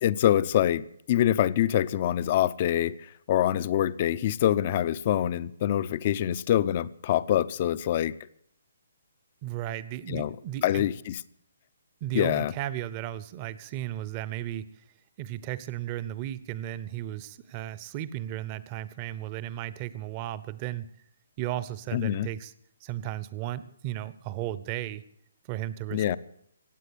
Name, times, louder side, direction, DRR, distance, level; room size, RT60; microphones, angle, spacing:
voice 1, 0.0-8.1 10.1-10.3 10.6-11.2 12.1-12.5 21.9-22.3 25.9-26.2, left 11 dB, 40° left, 0.6 m, -25 dB
voice 2, 9.4-10.9 12.0-14.8 15.2-20.9 21.4-22.5 22.8-25.0 25.5-26.2, right 13 dB, 30° right, 0.8 m, -35 dB
16.0 x 9.2 x 8.5 m
hypercardioid pair, 150°, 0 cm